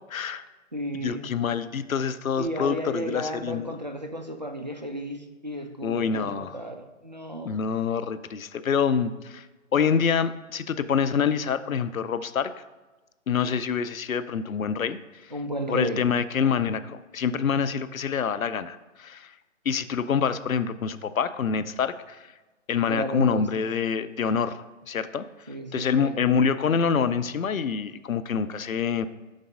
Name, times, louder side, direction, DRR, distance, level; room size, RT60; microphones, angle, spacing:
voice 1, 0.1-0.4 1.0-3.7 5.8-6.6 7.4-9.5 9.7-12.5 13.3-15.0 15.7-19.3 19.7-22.3 22.7-25.2 25.7-29.1, left 6 dB, 90° left, 13 dB, 0.5 m, -26 dB
voice 2, 0.7-1.3 2.4-7.6 15.3-16.0 22.9-23.5 25.5-26.2, right 1 dB, 35° right, 4 dB, 0.4 m, -33 dB
5.2 x 4.0 x 4.9 m, 1.2 s
figure-of-eight pair, 145°, 40 cm